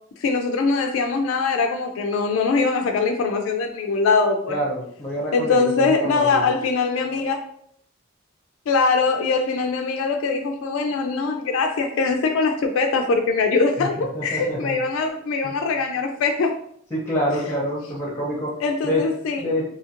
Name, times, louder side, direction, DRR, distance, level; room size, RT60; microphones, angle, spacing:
voice 1, 0.2-4.5 5.3-7.4 8.7-16.5 18.6-19.4, left 4 dB, 85° left, 4 dB, 0.3 m, -22 dB
voice 2, 4.5-6.5 13.8-14.8 15.4-15.5 16.9-18.5 18.8-19.0 19.4-19.6, equal, 10° left, -3 dB, 0.6 m, -27 dB
2.7 x 2.4 x 2.8 m, 0.66 s
head